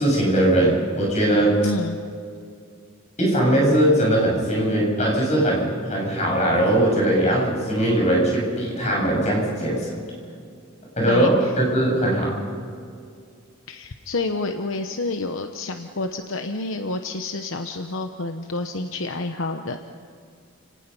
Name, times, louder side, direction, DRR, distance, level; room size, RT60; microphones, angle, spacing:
voice 1, 0.0-1.7 3.2-10.0 11.0-12.4, right 1 dB, 35° left, -2 dB, 7.6 m, -20 dB
voice 2, 1.6-2.0 11.1-11.5 13.7-19.8, left 2 dB, 65° left, 6 dB, 1.0 m, -29 dB
30.0 x 19.0 x 5.5 m, 2.3 s
head